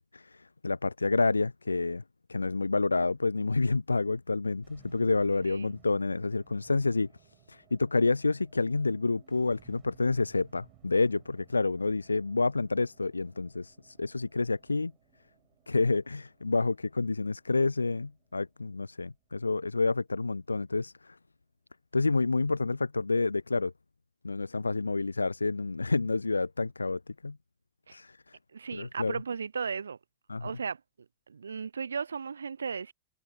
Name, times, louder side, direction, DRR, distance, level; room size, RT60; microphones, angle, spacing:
voice 1, 0.0-2.0 2.3-7.1 7.5-14.9 15.7-21.2 21.9-23.7 24.2-27.4 27.9-28.4 28.7-29.2 30.3-30.5, left 3 dB, 80° left, 0.4 m, -29 dB
sound 1, 4.6-21.0, right 16 dB, 35° right, 6.3 m, -62 dB
voice 2, 28.5-30.0 30.4-30.8 31.3-32.9, right 6 dB, 75° right, 0.7 m, -35 dB
figure-of-eight pair, 90°, 0 cm